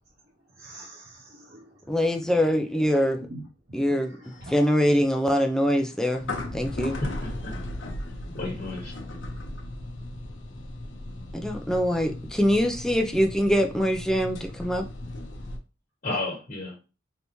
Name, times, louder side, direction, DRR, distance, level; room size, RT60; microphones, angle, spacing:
voice 1, 0.6-2.4 2.7-2.8 3.2-3.4 4.0-4.5, right 1 dB, 60° right, -5 dB, 1.0 m, -45 dB
voice 2, 1.9-3.3 3.7-4.2 4.5-6.2 6.5-7.0 11.3-14.9, equal, 5° left, 4 dB, 0.4 m, -23 dB
sound 1, 4.2-15.6, left 1 dB, 80° left, 0.7 m, -37 dB
voice 3, 7.0-7.5 8.3-8.9 16.0-16.8, left 2 dB, 45° left, -4 dB, 1.2 m, -32 dB
3.4 x 2.9 x 2.7 m, 0.32 s
head